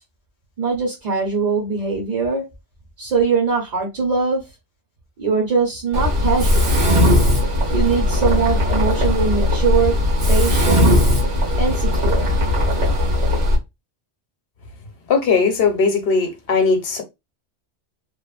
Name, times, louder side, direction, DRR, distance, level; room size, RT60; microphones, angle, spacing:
voice 1, 0.6-2.5 3.0-4.4 5.2-6.8 7.7-10.0 10.3-11.0 11.6-12.4, right 5 dB, 45° right, 0.7 m, -21 dB
Mechanisms, 5.9-13.5, left 1 dB, 90° right, 1.6 m, -18 dB
voice 2, 15.1-17.0, left 4 dB, 65° left, 0.9 m, -18 dB
3.1 x 2.0 x 2.3 m
omnidirectional pair, 1.2 m